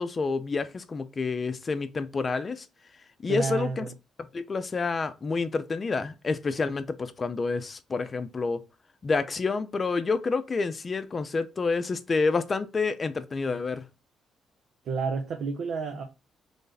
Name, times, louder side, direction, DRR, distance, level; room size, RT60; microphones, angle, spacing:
voice 1, 0.0-2.6 3.2-3.8 4.3-8.6 9.0-13.8, left 4 dB, 35° left, 0.5 m, -28 dB
voice 2, 3.3-3.9 14.8-16.0, right 5 dB, 70° right, 0.6 m, -30 dB
3.3 x 2.5 x 3.9 m
cardioid pair, 90°, 0 cm